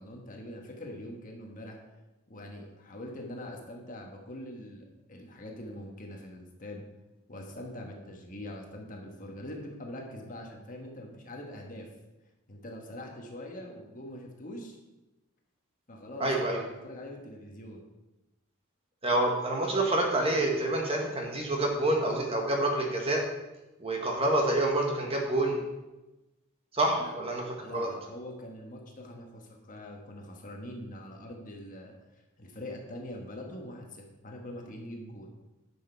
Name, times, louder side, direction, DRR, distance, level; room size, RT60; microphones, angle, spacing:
voice 1, 0.0-1.8 2.3-6.8 7.3-11.9 12.5-14.8 15.9-17.8 27.0-27.1 27.6-31.9 32.4-35.3, left 1 dB, 40° left, 1 dB, 1.4 m, -43 dB
voice 2, 16.2-16.6 19.0-23.2 23.8-25.6 26.7-27.4 27.7-27.9, right 1 dB, 30° right, 0 dB, 1.6 m, -27 dB
10.5 x 6.2 x 4.5 m, 1.0 s
head